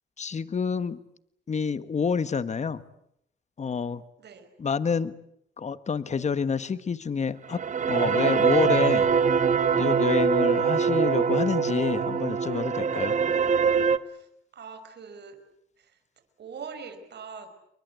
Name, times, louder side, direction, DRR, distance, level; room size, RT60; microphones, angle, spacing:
voice 1, 0.2-1.0 1.5-2.8 3.6-4.0 4.6-5.1 5.6-7.6 7.9-9.1 9.7-13.1, left 5 dB, 35° left, 14 dB, 1.4 m, -28 dB
sound 1, 7.4-14.0, right 6 dB, 40° right, 1.3 m, -23 dB
voice 2, 14.5-15.4 16.4-17.5, right 5 dB, 60° right, 9 dB, 5.2 m, -42 dB
30.0 x 23.0 x 8.3 m, 0.75 s
cardioid pair, 90°, 20 cm